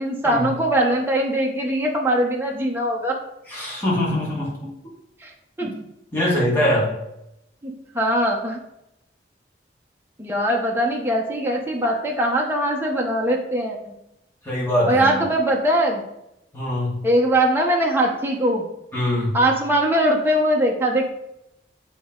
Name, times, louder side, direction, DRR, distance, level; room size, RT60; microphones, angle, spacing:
voice 1, 0.0-3.1 5.2-5.3 5.6-5.7 7.6-8.6 10.2-13.9 14.9-16.0 17.0-18.6 19.3-21.0, right 1 dB, 15° right, -1 dB, 1.0 m, -21 dB
voice 2, 3.5-4.7 5.6-5.7 6.1-6.9 14.4-15.2 16.5-17.0 18.9-19.4, left 1 dB, 15° left, -7 dB, 2.6 m, -23 dB
8.4 x 4.2 x 3.9 m, 0.85 s
head